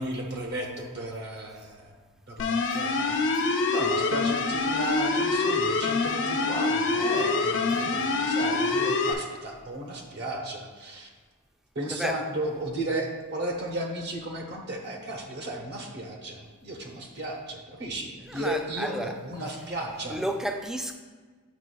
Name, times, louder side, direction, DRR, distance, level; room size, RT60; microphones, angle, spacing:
voice 1, 0.0-2.0 2.3-3.3 3.7-11.1 11.7-20.2, right 1 dB, 50° right, 0.8 m, -34 dB
sound 1, 2.4-9.1, left 4 dB, 55° left, 0.5 m, -25 dB
voice 2, 11.9-12.2 18.3-19.2 20.1-20.9, equal, ahead, 0.3 m, -31 dB
8.1 x 5.5 x 2.2 m
head